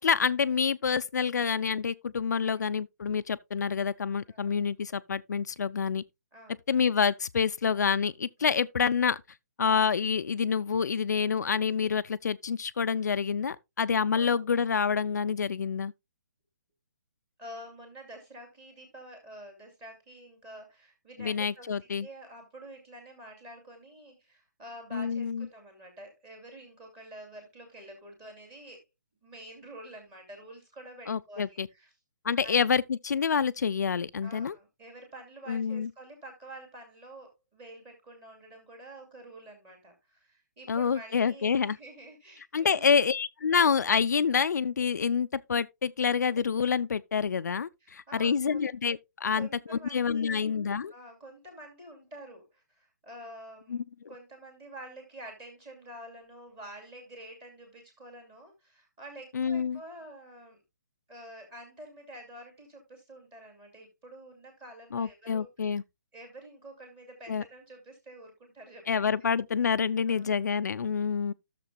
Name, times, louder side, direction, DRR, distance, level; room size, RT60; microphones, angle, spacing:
voice 1, 0.0-6.0 6.7-9.2 9.6-15.9 21.2-22.1 24.9-25.5 31.1-31.7 32.2-34.6 35.5-35.9 40.7-41.8 42.5-50.9 53.7-53.8 59.3-59.8 64.9-65.8 67.3-67.4 68.9-71.3, left 6 dB, 75° left, 0.5 m, -27 dB
voice 2, 4.3-4.6 6.3-6.6 8.4-8.6 14.1-14.4 17.4-21.7 22.0-28.8 29.2-31.9 32.4-32.6 34.2-43.0 47.8-48.7 49.3-50.5 50.9-53.8 54.1-60.6 61.1-65.7 66.1-69.3 70.1-70.3, right 1 dB, 15° right, 2.3 m, -48 dB
13.5 x 6.8 x 2.3 m
hypercardioid pair, 180°, 9 cm